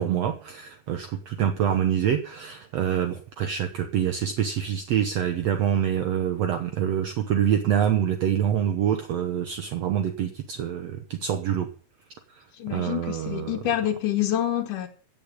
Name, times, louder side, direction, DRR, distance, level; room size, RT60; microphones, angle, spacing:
voice 1, 0.0-11.7 12.4-12.5 12.7-13.6, right 9 dB, 65° right, 1.9 m, -26 dB
voice 2, 12.5-14.9, left 11 dB, 75° left, 2.6 m, -27 dB
15.5 x 7.0 x 8.4 m
omnidirectional pair, 3.7 m